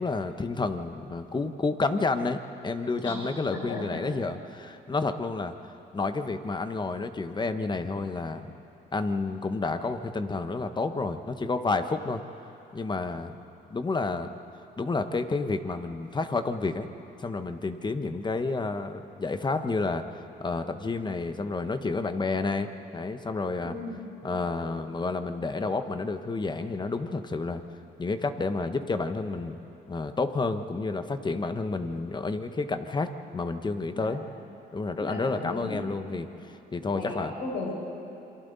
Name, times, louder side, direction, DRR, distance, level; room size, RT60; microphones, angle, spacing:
voice 1, 0.0-5.5 5.9-8.5 8.9-12.2 12.7-13.3 13.7-14.3 14.8-16.9 17.2-20.0 20.4-23.8 24.2-27.6 28.0-29.6 29.9-34.2 34.7-37.3, left 3 dB, 25° left, 8 dB, 1.2 m, -30 dB
voice 2, 3.5-3.8 23.6-24.0 33.9-34.1 35.0-35.8 36.9-37.7, left 3 dB, 90° left, -3 dB, 5.8 m, -36 dB
28.0 x 23.5 x 4.1 m, 2.9 s
cardioid pair, 85°, 18 cm